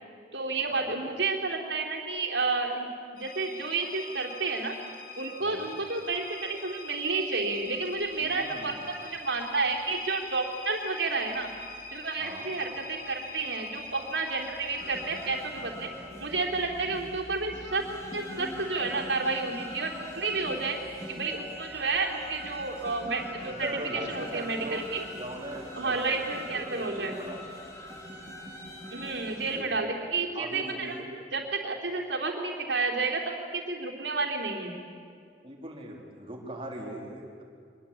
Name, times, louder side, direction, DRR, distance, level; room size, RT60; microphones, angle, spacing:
voice 1, 0.3-2.9 3.1-4.8 5.2-11.5 11.9-15.9 16.2-17.8 18.1-20.8 21.1-25.0 25.8-27.1 28.9-31.0 31.3-33.2 33.5-34.7, right 3 dB, 90° right, 1 dB, 3.7 m, -31 dB
sound 1, 3.2-15.4, left 3 dB, 55° left, 2.2 m, -44 dB
voice 2, 5.4-5.7 8.2-8.9 12.2-12.5 23.5-24.9 25.2-27.4 29.5-29.8 30.3-31.1 35.4-37.5, right 1 dB, 30° right, 0 dB, 3.9 m, -40 dB
sound 2, 14.8-29.6, left 1 dB, 20° left, 4.0 m, -43 dB
25.0 x 21.5 x 8.6 m, 2.3 s
head